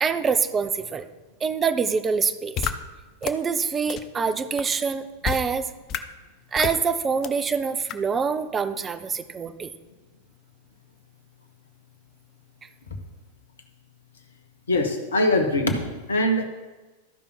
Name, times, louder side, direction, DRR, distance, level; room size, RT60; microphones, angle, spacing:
voice 1, 0.0-1.0 1.4-2.6 3.2-5.7 6.5-9.7, right 5 dB, 20° right, 11 dB, 0.7 m, -25 dB
sound 1, 2.6-2.7 3.2-3.3 3.9-4.0 4.6-4.7 5.2-5.4 5.9-6.0 6.6-6.8 7.2-7.3 7.9-8.0, left 10 dB, 35° left, 0.6 m, -27 dB
voice 2, 14.7-16.4, left 1 dB, 70° left, 6 dB, 1.3 m, -22 dB
14.0 x 5.3 x 4.7 m, 1.2 s
figure-of-eight pair, 90°, 0 cm